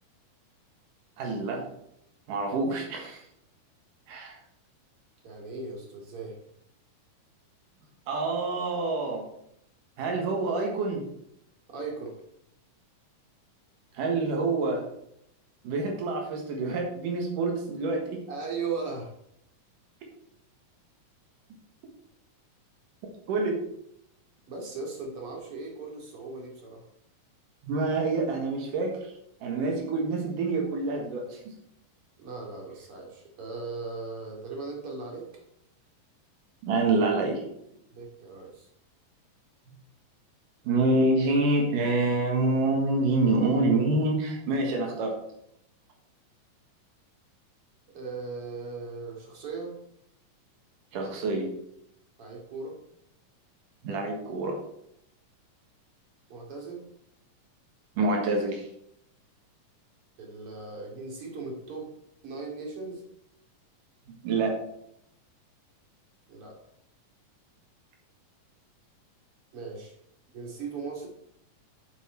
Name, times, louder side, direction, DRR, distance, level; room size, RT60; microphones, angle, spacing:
voice 1, 1.2-1.6 2.3-3.2 4.1-4.4 8.1-9.2 10.0-11.0 13.9-14.8 15.6-18.2 23.3-23.6 27.6-29.0 29.4-31.4 36.6-37.4 40.7-45.2 50.9-51.5 53.8-54.6 58.0-58.7 64.2-64.6, right 2 dB, 75° right, 1 dB, 3.0 m, -26 dB
voice 2, 5.2-6.4 11.7-12.1 18.3-19.1 24.5-26.8 32.2-35.3 37.9-38.7 47.9-49.7 52.2-52.8 56.3-56.8 60.2-61.9 62.2-63.0 66.3-66.6 69.5-69.9 70.3-71.1, right 4 dB, 45° right, -1 dB, 3.0 m, -38 dB
8.2 x 8.1 x 4.5 m, 0.75 s
omnidirectional pair, 3.8 m